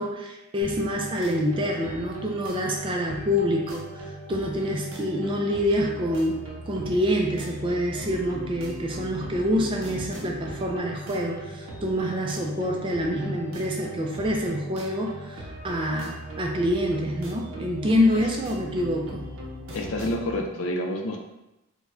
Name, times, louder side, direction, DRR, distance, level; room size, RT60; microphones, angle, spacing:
voice 1, 0.0-19.3, equal, 25° right, 1 dB, 0.3 m, -26 dB
sound 1, 0.6-20.3, right 1 dB, 65° right, 0.6 m, -39 dB
voice 2, 19.7-21.2, left 1 dB, 65° left, 2 dB, 0.4 m, -28 dB
4.2 x 2.1 x 2.5 m, 0.95 s
head